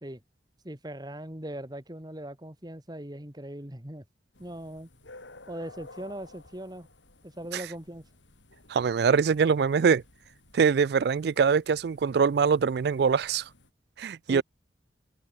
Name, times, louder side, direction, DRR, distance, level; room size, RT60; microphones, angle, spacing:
voice 1, 0.6-4.1 4.4-4.9 5.5-6.9 7.2-8.1 14.3-14.4, right 1 dB, 20° right, 2.2 m, -40 dB
sound 1, 4.3-13.7, left 2 dB, 90° left, 7.9 m, -54 dB
voice 2, 8.7-10.0 10.5-13.4 14.0-14.4, right 6 dB, 60° right, 0.4 m, -23 dB
head